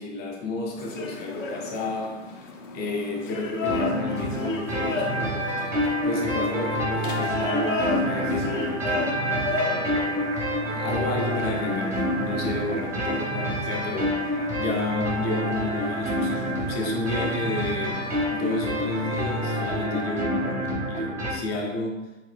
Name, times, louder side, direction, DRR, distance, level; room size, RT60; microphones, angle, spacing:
voice 1, 0.0-2.3 2.7-5.5 6.0-10.3 10.6-22.1, left 2 dB, 25° left, 0 dB, 0.7 m, -32 dB
sound 1, 0.8-19.9, left 4 dB, 85° left, 0.7 m, -36 dB
sound 2, 3.6-21.3, equal, 5° right, 0.8 m, -27 dB
3.2 x 2.7 x 3.3 m, 0.99 s
hypercardioid pair, 115°, 38 cm